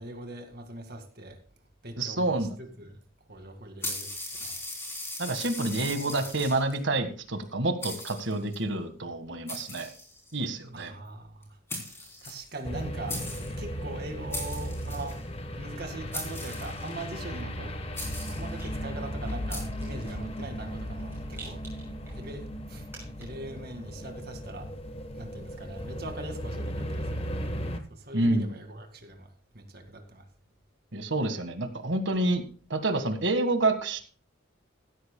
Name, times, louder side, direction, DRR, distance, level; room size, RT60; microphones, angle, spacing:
voice 1, 0.0-1.4 1.8-3.0 3.3-4.6 10.7-11.6 12.2-13.2 13.6-15.2 15.6-17.7 18.3-21.6 22.1-22.9 23.2-24.7 25.2-27.5 27.9-30.3, right 2 dB, 50° right, 2.0 m, -41 dB
voice 2, 2.0-2.5 5.2-9.9 10.3-10.9 28.1-28.5 30.9-32.4 32.7-34.0, right 2 dB, 65° right, 1.7 m, -28 dB
sound 1, 3.8-6.8 7.4-7.5 7.8-8.6 9.5-10.4 11.4-11.5 11.7-12.8 13.1-13.6 14.3-15.2 16.1-17.0 17.9-18.5 19.5-19.6, left 2 dB, 10° left, 3.4 m, -38 dB
sound 2, 12.6-27.8, equal, 30° left, 1.1 m, -36 dB
Rattle, 18.2-23.5, right 3 dB, 10° right, 6.1 m, -52 dB
15.5 x 13.5 x 2.3 m
head